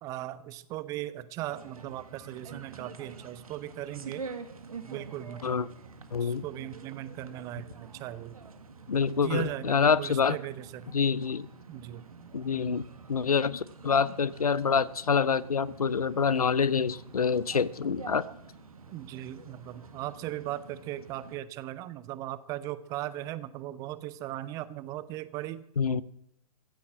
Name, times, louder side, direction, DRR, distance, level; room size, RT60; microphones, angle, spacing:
voice 1, 0.0-4.3 4.9-5.6 6.2-8.3 9.2-10.9 11.7-12.1 12.5-12.8 18.9-25.6 25.9-26.0, right 14 dB, 15° right, 17 dB, 0.5 m, -38 dB
sound 1, 1.5-21.4, right 4 dB, 65° right, 1.6 m, -47 dB
voice 2, 6.1-6.4 8.9-10.4 10.9-11.5 12.3-12.8 13.1-18.2 25.8-26.0, left 6 dB, 70° left, 19 dB, 0.7 m, -26 dB
15.5 x 8.5 x 7.5 m, 0.76 s
figure-of-eight pair, 115°, 20 cm